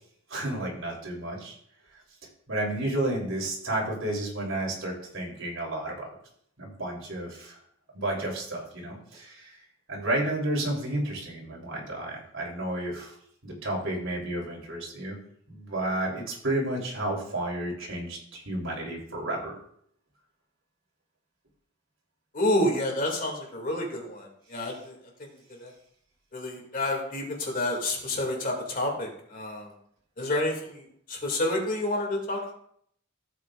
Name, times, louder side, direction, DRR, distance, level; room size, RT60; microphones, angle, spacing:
voice 1, 0.3-1.5 2.5-6.2 6.6-7.6 7.9-9.6 9.9-13.2 13.4-15.2 15.5-19.6 24.6-24.7, right 1 dB, 90° right, -2 dB, 3.6 m, -31 dB
voice 2, 22.3-24.9 25.2-25.3 25.6-25.7 26.3-29.7 30.2-32.5, left 1 dB, 45° left, 0 dB, 2.6 m, -29 dB
14.5 x 8.4 x 2.5 m, 0.68 s
head